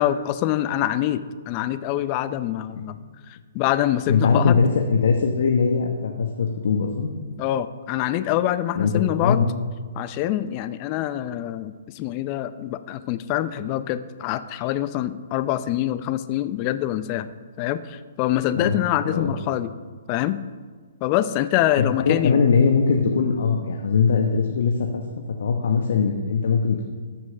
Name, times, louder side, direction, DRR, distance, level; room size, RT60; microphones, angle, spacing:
voice 1, 0.0-3.0 3.3-4.6 7.4-9.4 10.0-17.3 17.6-19.7 20.1-20.4 21.0-22.4, left 13 dB, 35° left, 13 dB, 0.6 m, -25 dB
voice 2, 4.1-7.1 8.7-9.5 18.5-18.8 19.0-19.3 21.8-25.0 25.4-26.9, left 5 dB, 65° left, 3 dB, 1.2 m, -21 dB
13.5 x 6.1 x 6.4 m, 1.5 s
hypercardioid pair, 130°, 0 cm